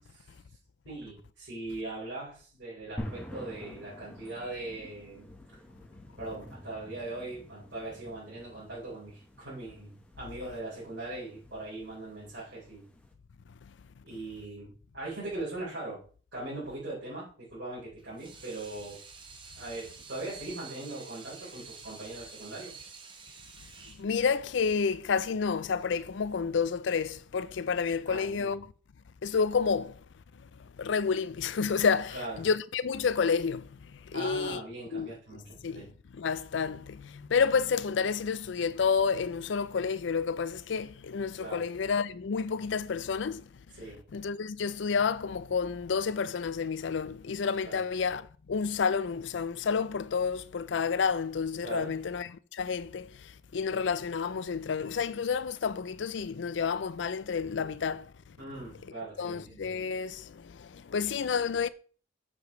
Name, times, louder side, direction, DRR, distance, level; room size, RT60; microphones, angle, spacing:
voice 1, 0.9-5.3 6.2-12.8 14.0-16.0 16.3-19.0 19.6-22.7 28.1-28.5 32.1-32.4 34.1-35.8 41.4-41.6 43.8-44.0 47.6-47.8 51.6-51.9 58.4-59.6, right 2 dB, 65° right, 4.0 m, -40 dB
sound 1, 3.0-13.1, equal, 5° left, 1.1 m, -48 dB
Water tap faucet / Sink (filling or washing), 18.0-26.0, right 5 dB, 25° right, 1.0 m, -49 dB
voice 2, 24.0-28.7 29.2-30.0 30.6-34.6 34.9-35.1 35.6-43.6 44.1-58.4 59.2-61.7, left 5 dB, 70° left, 0.4 m, -30 dB
8.2 x 6.9 x 3.1 m
head